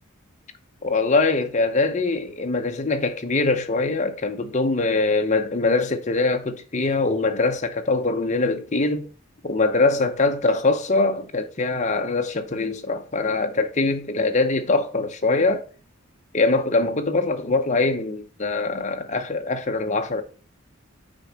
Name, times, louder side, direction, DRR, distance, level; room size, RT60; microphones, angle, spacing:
voice 1, 0.8-9.1 9.4-15.6 16.3-20.2, left 3 dB, 35° left, 0.7 m, -23 dB
6.3 x 4.4 x 5.1 m
head